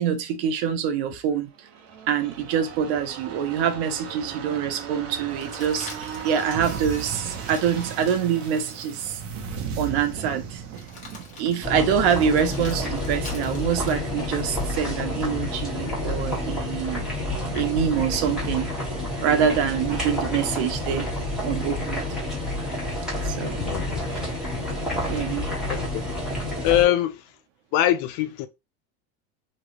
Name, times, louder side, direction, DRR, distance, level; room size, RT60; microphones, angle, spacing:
voice 1, 0.0-1.5 2.1-9.2 9.8-10.6 11.4-17.1 17.4-21.1 21.4-22.0 23.2-23.7 24.1-24.3 25.1-25.5, right 8 dB, 85° right, 0.9 m, -25 dB
sound 1, 1.5-15.0 15.3-15.4, right 6 dB, 55° right, 1.1 m, -37 dB
sound 2, 5.3-8.8 9.3-9.4 10.7-14.8 17.0-17.8, left 3 dB, 25° left, 1.3 m, -46 dB
sound 3, 11.6-26.8, left 1 dB, ahead, 1.5 m, -29 dB
voice 2, 23.6-24.0 25.7-26.0 26.6-27.2 27.7-28.5, left 13 dB, 65° left, 0.7 m, -22 dB
3.1 x 2.7 x 2.9 m
cardioid pair, 145°, 32 cm